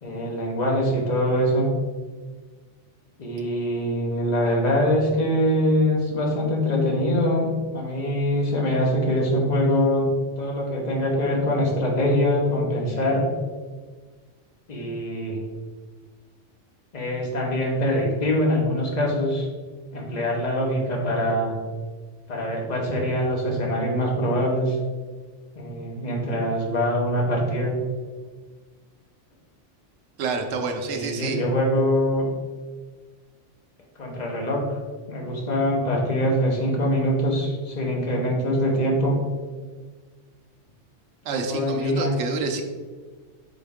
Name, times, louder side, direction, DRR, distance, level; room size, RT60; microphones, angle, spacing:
voice 1, 0.0-1.7 3.2-10.1 10.4-13.3 14.7-15.4 16.9-19.5 19.9-21.5 22.3-24.8 25.5-27.7 30.8-32.3 34.0-34.8 35.1-39.2 41.3-42.1, equal, 40° left, -1 dB, 0.9 m, -23 dB
voice 2, 30.2-31.4 41.2-42.6, right 4 dB, 75° right, 4 dB, 0.9 m, -28 dB
4.1 x 3.6 x 3.5 m, 1.4 s
omnidirectional pair, 1.2 m